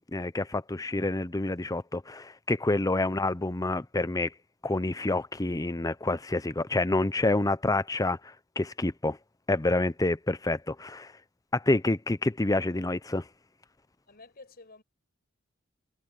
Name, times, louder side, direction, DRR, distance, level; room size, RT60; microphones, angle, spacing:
voice 1, 0.1-4.3 4.6-9.2 9.5-11.1 11.5-13.2, left 2 dB, 15° left, 0.7 m, -28 dB
voice 2, 14.1-14.8, left 3 dB, 50° left, 5.3 m, -50 dB
head